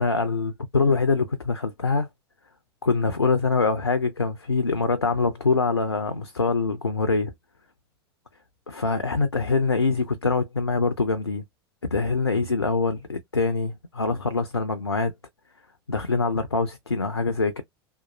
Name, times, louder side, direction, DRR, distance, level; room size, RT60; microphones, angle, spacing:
voice 1, 0.0-2.1 2.8-7.3 8.7-11.4 11.9-15.1 15.9-17.6, left 4 dB, 90° left, 0.4 m, -24 dB
2.8 x 2.2 x 2.5 m
figure-of-eight pair, 80°, 13 cm